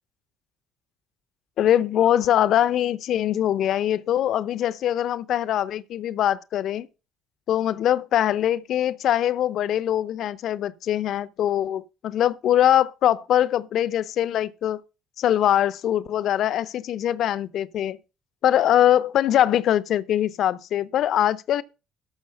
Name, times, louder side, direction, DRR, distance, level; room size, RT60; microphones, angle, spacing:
voice 1, 1.6-6.9 7.5-14.8 15.2-18.0 18.4-21.6, left 11 dB, 60° left, 0.7 m, -22 dB
13.0 x 6.2 x 5.5 m
hypercardioid pair, 55°, 0 cm